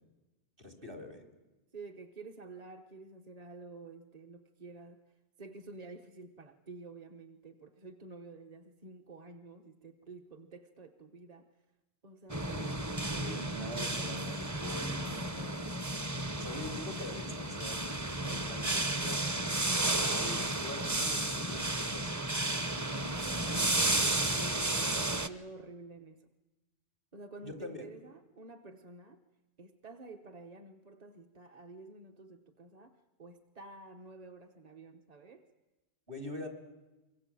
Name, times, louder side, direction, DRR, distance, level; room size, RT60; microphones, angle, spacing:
voice 1, 0.6-1.2 12.5-12.8 13.1-15.7 16.3-19.8 20.0-22.3 27.4-27.9 36.1-36.5, left 1 dB, 55° right, 4 dB, 3.7 m, -44 dB
voice 2, 1.7-5.0 5.4-11.5 12.0-12.7 23.0-26.2 27.1-29.2 29.6-35.4, right 3 dB, 40° right, 5 dB, 1.0 m, -50 dB
sound 1, 12.3-25.3, right 1 dB, 20° right, 0.8 m, -33 dB
25.0 x 24.0 x 7.6 m, 1.1 s
omnidirectional pair, 1.1 m